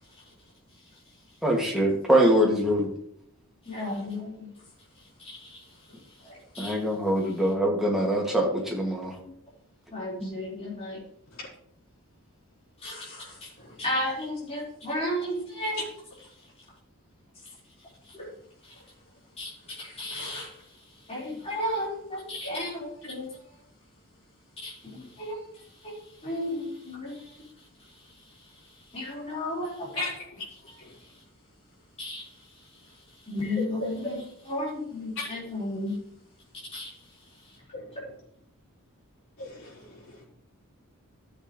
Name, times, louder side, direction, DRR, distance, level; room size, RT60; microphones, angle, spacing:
voice 1, 1.4-2.9 6.6-9.2 10.2-10.3, equal, ahead, 2.3 m, -23 dB
voice 2, 3.6-4.5 4.9-6.8 9.9-11.0 12.8-15.8 17.8-18.3 18.6-18.7 19.4-23.4 24.6-30.0 30.7-31.2 32.0-35.9 36.7-37.6, left 1 dB, 30° left, 4.8 m, -35 dB
voice 3, 33.4-33.9 37.7-37.9 39.4-40.2, left 2 dB, 65° left, 5.0 m, -36 dB
14.5 x 7.7 x 3.3 m
head